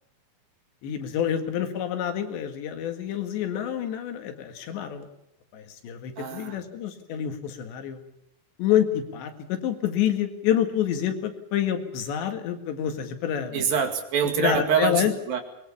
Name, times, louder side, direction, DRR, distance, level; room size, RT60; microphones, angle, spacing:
voice 1, 0.8-5.1 5.5-8.0 8.6-13.7 14.4-15.1, left 10 dB, 90° left, 6 dB, 4.2 m, -27 dB
voice 2, 6.2-6.6 13.5-15.4, right 7 dB, 60° right, 6 dB, 3.8 m, -25 dB
22.0 x 21.5 x 7.1 m, 0.83 s
omnidirectional pair, 4.9 m